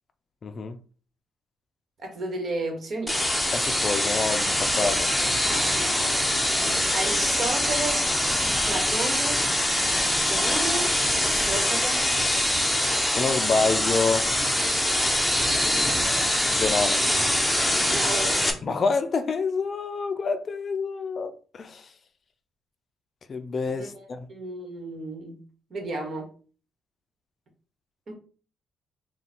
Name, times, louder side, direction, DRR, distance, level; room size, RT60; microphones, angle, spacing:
voice 1, 0.4-0.8 3.5-5.1 13.1-14.3 16.5-17.0 18.6-21.9 23.3-24.2, left 4 dB, 45° left, 0.5 m, -27 dB
voice 2, 2.0-3.2 6.9-8.0 8.6-9.5 10.2-11.0 11.2-12.1 17.8-18.6 23.7-25.4 25.7-26.3 28.1-28.2, right 2 dB, 50° right, 1.5 m, -33 dB
sound 1, 3.1-18.5, left 1 dB, 5° left, 0.8 m, -24 dB
3.8 x 2.3 x 4.4 m
cardioid pair, 90°, 0 cm